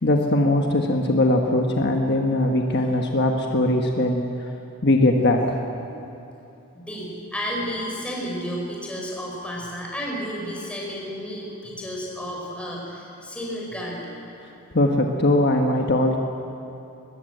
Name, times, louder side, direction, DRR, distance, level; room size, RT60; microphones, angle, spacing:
voice 1, 0.0-4.3 4.8-5.6 14.7-16.2, left 1 dB, 50° left, 2 dB, 1.3 m, -20 dB
voice 2, 6.7-14.1, equal, 5° left, -3 dB, 5.3 m, -32 dB
22.0 x 20.0 x 8.0 m, 2.8 s
head